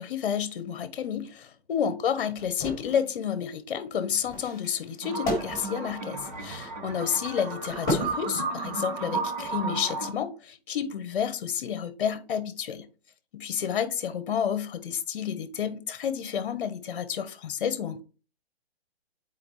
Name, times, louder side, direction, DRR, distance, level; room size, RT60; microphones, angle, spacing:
voice 1, 0.0-12.9 13.3-18.0, left 8 dB, 55° left, 1.0 m, -30 dB
sound 1, 2.4-3.0 4.2-6.7 7.6-8.8 9.3-9.6, left 1 dB, 10° left, 3.0 m, -34 dB
sound 2, 5.0-10.1, right 4 dB, 40° right, 1.4 m, -33 dB
7.7 x 4.6 x 3.1 m
hypercardioid pair, 160°, 32 cm